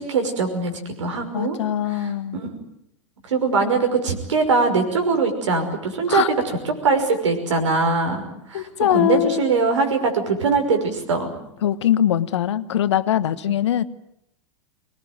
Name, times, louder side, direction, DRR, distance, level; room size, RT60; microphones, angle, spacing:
voice 1, 0.0-1.6 1.9-2.5 3.2-6.6 6.8-8.7 8.9-11.3, right 4 dB, 70° right, 5 dB, 5.8 m, -22 dB
voice 2, 1.3-2.4 6.1-6.3 8.5-9.6 11.6-13.8, left 11 dB, 65° left, 14 dB, 1.2 m, -22 dB
24.5 x 21.0 x 9.5 m, 0.77 s
figure-of-eight pair, 90°, 16 cm